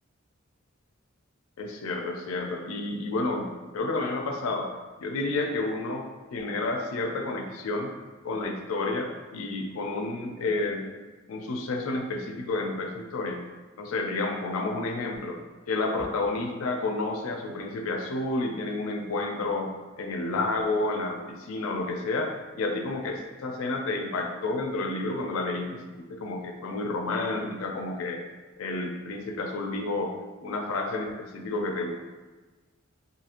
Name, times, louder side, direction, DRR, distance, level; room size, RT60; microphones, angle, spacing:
voice 1, 1.6-3.5 3.7-4.7 5.0-6.1 6.3-7.9 8.2-10.8 11.3-13.4 13.8-15.4 15.7-19.7 20.0-28.2 28.6-30.2 30.4-31.9, left 2 dB, 85° left, 3 dB, 0.4 m, -30 dB
2.8 x 2.6 x 2.4 m, 1.3 s
head